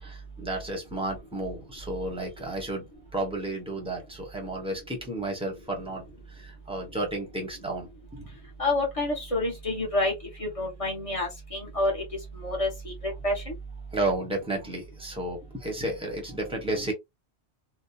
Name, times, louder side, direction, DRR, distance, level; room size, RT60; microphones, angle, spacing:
voice 1, 0.0-2.9 3.1-8.3 13.9-16.9, right 1 dB, 5° right, 0.8 m, -32 dB
voice 2, 8.6-10.1 10.4-12.0 12.4-13.5, left 2 dB, 30° left, 1.0 m, -28 dB
2.9 x 2.1 x 2.2 m
omnidirectional pair, 1.2 m